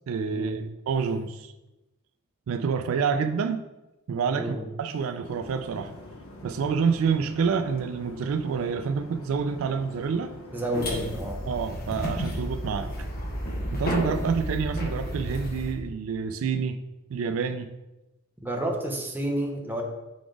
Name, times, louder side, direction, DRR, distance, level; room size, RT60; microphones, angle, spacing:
voice 1, 0.1-1.5 2.5-3.6 4.1-5.9 6.4-10.3 11.5-12.9 13.7-16.8 17.1-17.7, right 6 dB, 70° right, 9 dB, 0.3 m, -28 dB
voice 2, 4.3-4.7 10.5-11.4 18.4-19.8, right 1 dB, 10° right, 1 dB, 0.7 m, -30 dB
sound 1, 5.2-14.0, left 1 dB, 80° left, 0.9 m, -45 dB
sound 2, 10.7-15.7, equal, 45° left, 1.2 m, -32 dB
5.0 x 4.0 x 4.7 m, 1.0 s
head